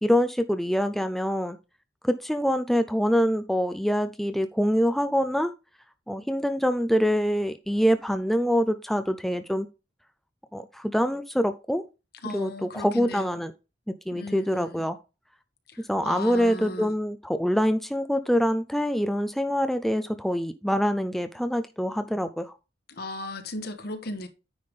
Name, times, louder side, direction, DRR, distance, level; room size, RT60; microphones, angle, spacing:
voice 1, 0.0-1.6 2.0-5.5 6.1-9.7 10.5-11.8 12.3-13.5 13.9-15.0 15.9-22.6, equal, ahead, 0.4 m, -25 dB
voice 2, 12.2-13.4 14.1-14.8 15.7-16.9 22.9-24.3, left 1 dB, 60° left, 1.3 m, -36 dB
9.6 x 3.5 x 5.2 m
head